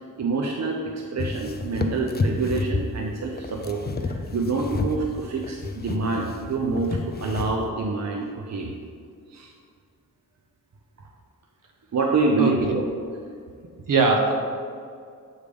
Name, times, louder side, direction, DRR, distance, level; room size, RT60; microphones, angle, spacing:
voice 1, 0.2-8.7 9.3-9.5 11.9-12.9, right 3 dB, 55° right, 0 dB, 0.7 m, -26 dB
sound 1, 1.2-7.7, left 3 dB, 30° left, 0.5 m, -30 dB
voice 2, 12.4-12.8 13.9-14.3, right 4 dB, 70° right, 2 dB, 1.0 m, -21 dB
8.1 x 3.5 x 5.1 m, 2.2 s
wide cardioid pair, 100°, 33 cm